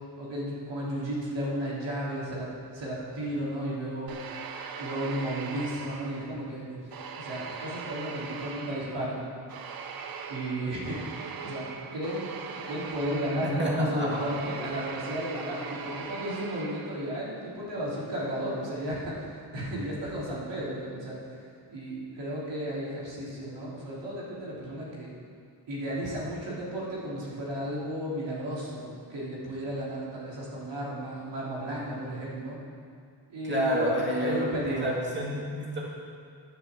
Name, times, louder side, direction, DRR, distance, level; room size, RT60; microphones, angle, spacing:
voice 1, 0.2-4.2 4.8-6.9 7.1-9.2 10.3-12.3 12.6-21.4 21.7-25.1 25.7-32.6 33.3-33.9 34.2-35.0, equal, 90° right, -6 dB, 3.2 m, -34 dB
sound 1, 4.1-6.5 6.9-17.2, right 5 dB, 55° right, 0.8 m, -40 dB
voice 2, 13.4-14.3 33.4-35.8, equal, 25° right, -5 dB, 2.0 m, -29 dB
10.5 x 6.7 x 7.2 m, 2.3 s
wide cardioid pair, 120°, 42 cm